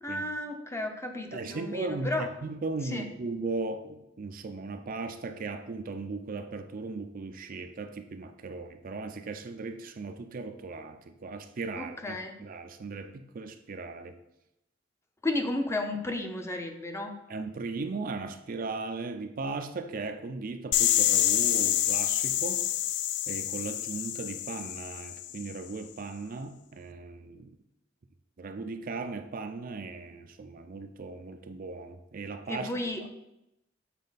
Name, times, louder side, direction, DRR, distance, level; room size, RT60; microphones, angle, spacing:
voice 1, 0.0-2.3 2.9-3.1 11.8-12.4 15.2-17.1 32.5-33.0, left 2 dB, 15° left, 4 dB, 0.6 m, -33 dB
voice 2, 1.3-14.2 17.3-22.7 23.3-27.5 28.4-32.7 33.0-33.1, right 3 dB, 45° right, 7 dB, 0.4 m, -37 dB
sound 1, 20.7-25.5, left 12 dB, 60° left, 0.3 m, -27 dB
7.3 x 4.3 x 4.0 m, 0.87 s
head